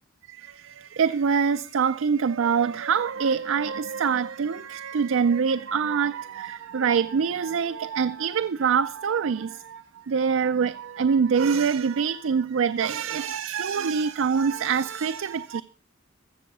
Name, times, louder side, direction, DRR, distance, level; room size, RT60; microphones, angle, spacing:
voice 1, 0.3-15.6, right 6 dB, 75° right, 0.4 m, -25 dB
14.5 x 6.9 x 5.4 m
head